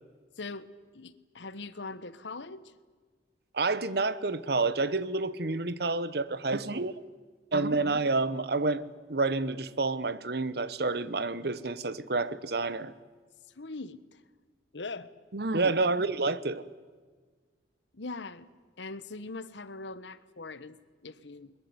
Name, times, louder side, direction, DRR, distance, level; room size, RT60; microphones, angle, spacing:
voice 1, 0.4-0.7 0.9-2.7 13.5-14.2 14.7-15.1 17.9-18.5 18.8-21.5, left 3 dB, 80° left, 1.2 m, -41 dB
voice 2, 3.5-6.9 7.5-8.8 9.1-12.9 15.3-16.6, right 3 dB, 60° right, 1.0 m, -29 dB
21.5 x 21.5 x 9.6 m
head